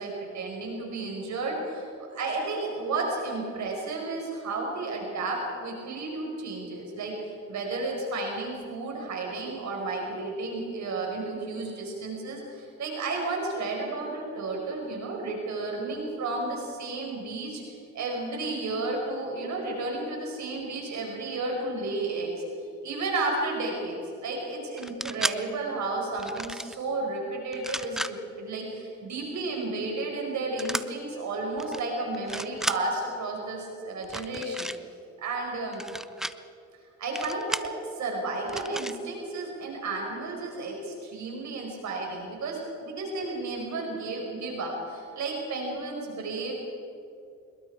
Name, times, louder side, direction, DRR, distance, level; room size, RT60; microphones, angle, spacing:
voice 1, 0.0-22.3 22.8-34.7 35.2-35.8 37.0-46.5, right 3 dB, 65° right, 0 dB, 5.2 m, -32 dB
sound 1, 24.8-25.4 26.2-26.8 27.5-28.1 30.6-30.8 31.6-31.8 32.1-32.8 34.0-34.8 35.7-36.3 37.2-37.7 38.5-39.0, equal, ahead, 0.7 m, -33 dB
25.5 x 22.0 x 4.8 m, 2.5 s
cardioid pair, 90°, 30 cm